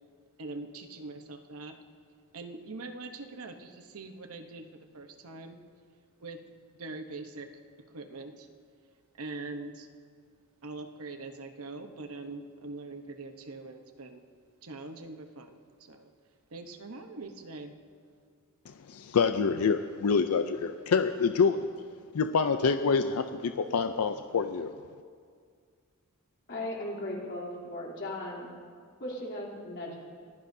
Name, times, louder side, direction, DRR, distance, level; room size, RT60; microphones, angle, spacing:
voice 1, 0.4-1.8 2.3-4.6 4.9-5.6 6.2-6.4 6.8-7.5 7.9-8.5 9.2-9.9 10.6-14.2 14.6-16.1 16.5-17.7, right 3 dB, 70° right, 6 dB, 1.0 m, -42 dB
voice 2, 18.7-21.6 22.1-24.7, left 5 dB, 70° left, 9 dB, 0.5 m, -27 dB
voice 3, 26.5-28.5 29.0-30.0, left 1 dB, 55° left, -3 dB, 3.2 m, -37 dB
24.0 x 15.5 x 2.7 m, 2.1 s
head